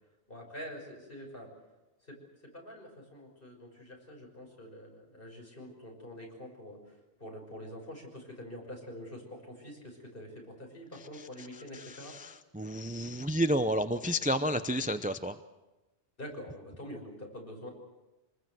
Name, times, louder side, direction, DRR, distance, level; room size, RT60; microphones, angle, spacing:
voice 1, 0.3-1.5 2.0-2.2 2.5-6.8 7.2-12.2 16.2-17.7, equal, 50° left, 1 dB, 6.4 m, -46 dB
voice 2, 11.7-15.4, equal, 10° right, 9 dB, 0.6 m, -31 dB
26.0 x 20.5 x 7.8 m, 1.1 s
omnidirectional pair, 1.2 m